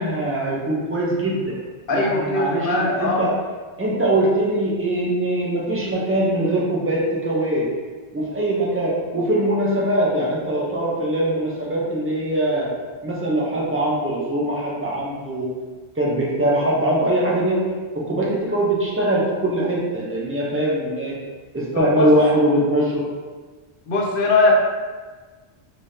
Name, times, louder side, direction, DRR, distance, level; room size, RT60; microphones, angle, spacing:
voice 1, 0.0-1.6 1.9-3.3 3.8-7.7 8.1-12.7 13.0-15.5 16.0-17.6 17.9-21.2 21.5-23.0, right 1 dB, 15° right, -5 dB, 0.6 m, -22 dB
voice 2, 1.9-3.3 21.7-22.1 23.9-24.5, left 2 dB, 60° left, -1 dB, 0.8 m, -20 dB
3.6 x 3.3 x 2.7 m, 1.4 s
omnidirectional pair, 1.1 m